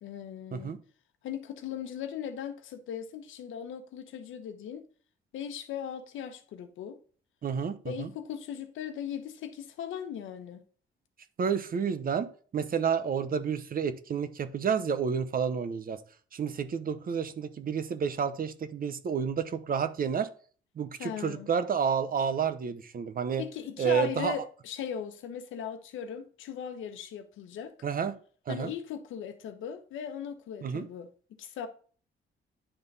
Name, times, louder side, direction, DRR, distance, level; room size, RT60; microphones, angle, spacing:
voice 1, 0.0-0.7 1.2-4.8 5.3-7.0 7.8-10.6 21.0-21.5 23.4-27.7 28.5-31.1 31.4-31.7, left 8 dB, 80° left, 1.0 m, -38 dB
voice 2, 7.4-8.1 11.4-16.0 16.3-20.3 20.8-23.4 23.8-24.4 27.8-28.1 28.5-28.7 30.6-30.9, right 7 dB, 45° right, 0.8 m, -30 dB
10.0 x 3.5 x 4.0 m
cardioid pair, 90°, 20 cm